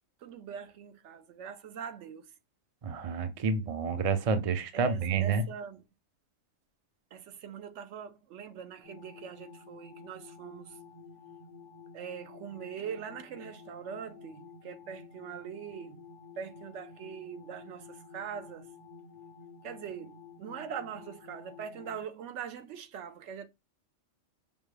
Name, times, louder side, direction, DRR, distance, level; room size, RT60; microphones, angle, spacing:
voice 1, 0.2-2.3 4.7-5.8 7.1-10.8 11.9-16.0 16.4-18.7 19.6-23.5, right 7 dB, 75° right, 0.9 m, -42 dB
voice 2, 2.8-5.4, right 5 dB, 45° right, 0.4 m, -29 dB
sound 1, 8.8-22.0, left 5 dB, 50° left, 0.7 m, -51 dB
5.2 x 2.2 x 3.2 m
omnidirectional pair, 1.3 m